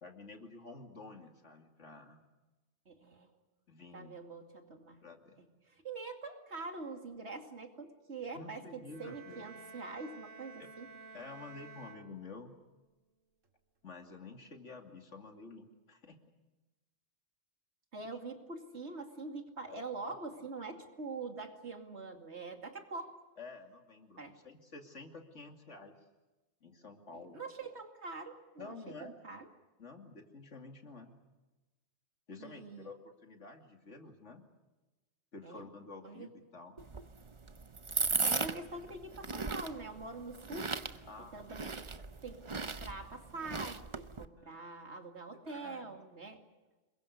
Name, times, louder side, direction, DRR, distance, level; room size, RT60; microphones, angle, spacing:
voice 1, 0.0-2.2 3.7-4.1 5.0-5.4 8.3-9.5 11.1-12.5 13.8-16.2 19.6-20.1 23.4-25.9 26.6-27.4 28.6-29.1 29.8-31.1 32.3-34.4 35.3-36.8 41.0-41.4 44.4-44.6 45.4-46.0, left 3 dB, 70° left, 4 dB, 2.9 m, -50 dB
voice 2, 2.9-3.3 3.9-5.0 5.4-10.9 17.9-23.1 24.2-24.4 27.1-29.5 32.4-32.9 35.4-35.7 36.0-36.3 38.2-40.7 41.2-41.9 42.2-46.4, right 3 dB, 60° right, 4 dB, 2.8 m, -45 dB
sound 1, 8.9-12.7, right 4 dB, 85° right, 2.6 m, -52 dB
sound 2, 36.8-44.3, right 4 dB, 30° right, 0.8 m, -37 dB
27.5 x 22.5 x 6.7 m, 1.1 s
omnidirectional pair, 1.3 m